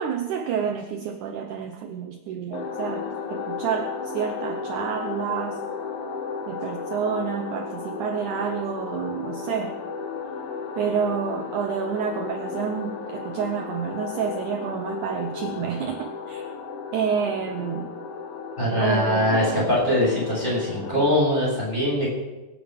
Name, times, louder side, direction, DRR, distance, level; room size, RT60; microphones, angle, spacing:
voice 1, 0.0-5.6 6.5-9.8 10.8-16.5 16.9-17.9 18.8-19.7, right 7 dB, 75° right, 4 dB, 1.8 m, -29 dB
sound 1, 2.5-21.1, left 5 dB, 60° left, 2.4 m, -34 dB
voice 2, 18.6-22.1, left 1 dB, 10° left, -6 dB, 7.3 m, -22 dB
23.5 x 8.9 x 5.3 m, 1.1 s
omnidirectional pair, 4.6 m